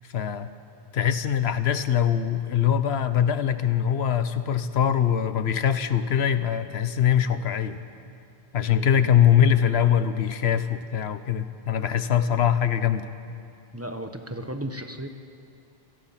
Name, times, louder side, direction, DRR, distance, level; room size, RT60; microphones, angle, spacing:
voice 1, 0.1-0.5 0.9-7.8 8.5-13.1, left 9 dB, 80° left, 12 dB, 1.1 m, -22 dB
voice 2, 8.7-9.0 13.7-15.1, right 1 dB, 15° right, 6 dB, 1.1 m, -35 dB
26.5 x 18.0 x 5.8 m, 2.5 s
omnidirectional pair, 1.1 m